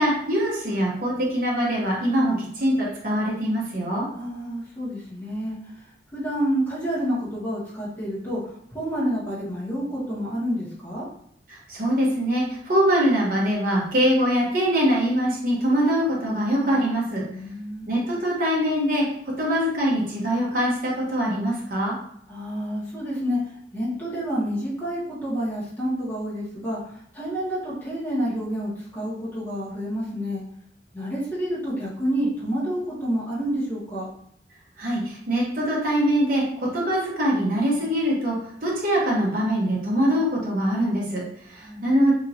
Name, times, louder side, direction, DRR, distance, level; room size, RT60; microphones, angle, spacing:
voice 1, 0.0-4.1 11.5-17.2 17.9-19.0 19.4-21.9 34.8-42.1, equal, 50° right, -5 dB, 0.8 m, -23 dB
voice 2, 4.1-5.6 6.1-11.0 17.3-17.9 22.3-30.4 30.9-34.1 41.6-41.9, equal, 10° left, -9 dB, 1.3 m, -29 dB
2.9 x 2.8 x 2.6 m, 0.69 s
head